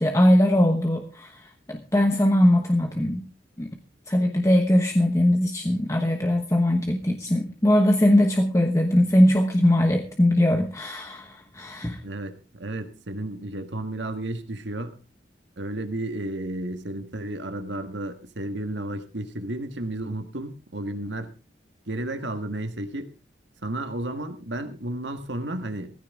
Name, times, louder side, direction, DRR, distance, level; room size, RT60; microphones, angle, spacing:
voice 1, 0.0-1.4 1.7-3.2 3.6-3.7 4.1-12.0, left 1 dB, 15° left, 5 dB, 1.1 m, -21 dB
voice 2, 12.0-14.9 15.6-21.3 21.9-23.1 23.6-25.9, right 1 dB, 75° right, 7 dB, 1.6 m, -32 dB
16.5 x 15.0 x 3.6 m, 0.33 s
head